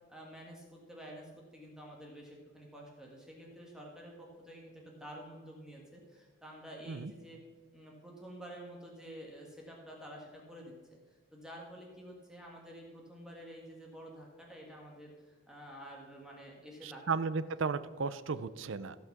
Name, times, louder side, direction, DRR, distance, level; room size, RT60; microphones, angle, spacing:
voice 1, 0.1-7.4 7.7-11.0 11.3-17.0, equal, 5° right, -2 dB, 1.6 m, -50 dB
voice 2, 16.8-19.0, right 5 dB, 65° right, 14 dB, 0.5 m, -35 dB
15.0 x 5.7 x 5.9 m, 1.4 s
head